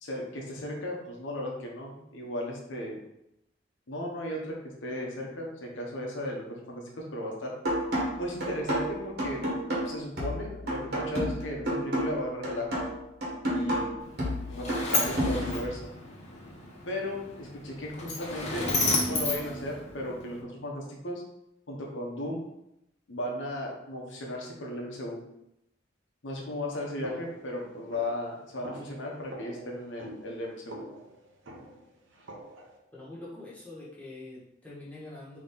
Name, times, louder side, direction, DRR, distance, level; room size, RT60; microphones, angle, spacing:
voice 1, 0.0-3.0 3.9-4.6 4.8-7.5 8.2-9.4 9.8-12.9 13.5-13.9 14.5-15.9 16.9-21.2 21.7-22.4 23.1-25.2 26.2-30.8, left 1 dB, 80° left, -1 dB, 0.9 m, -36 dB
sound 1, 7.6-15.6, equal, 60° right, 1.2 m, -31 dB
Sliding door, 14.0-20.4, left 2 dB, 40° left, 0.9 m, -32 dB
sound 2, 27.0-32.8, right 1 dB, 85° right, 0.8 m, -47 dB
voice 2, 32.9-35.4, left 2 dB, 5° left, -8 dB, 1.4 m, -44 dB
4.0 x 3.0 x 3.7 m, 0.82 s
head